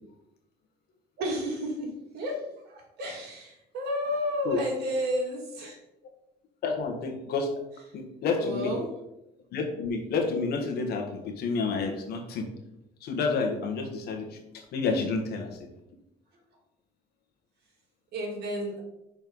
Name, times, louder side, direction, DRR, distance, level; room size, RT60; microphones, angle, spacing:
voice 1, 1.2-5.8 8.3-8.9 14.8-15.1 18.1-18.8, equal, 75° right, 0 dB, 2.5 m, -32 dB
voice 2, 6.6-7.5 7.9-8.7 9.5-12.5 13.0-14.4 14.7-15.5, left 4 dB, 70° left, 4 dB, 1.5 m, -29 dB
6.3 x 4.4 x 5.4 m, 0.88 s
cardioid pair, 110°, 17 cm